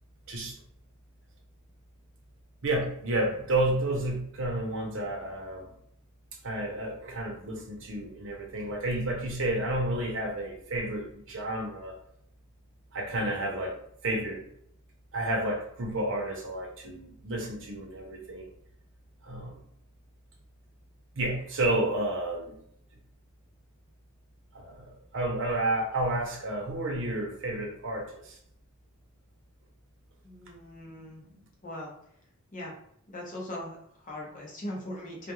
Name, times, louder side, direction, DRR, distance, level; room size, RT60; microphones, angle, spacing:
voice 1, 2.6-5.7 6.4-11.9 12.9-13.7 14.0-14.4 15.1-18.5 19.2-19.6 21.2-22.6 24.5-24.9 25.1-28.4, right 1 dB, 55° right, 1 dB, 0.7 m, -31 dB
voice 2, 30.2-31.2 31.6-31.9 32.5-32.7 33.1-35.3, left 1 dB, 35° left, -3 dB, 0.7 m, -40 dB
2.3 x 2.2 x 2.9 m, 0.71 s
head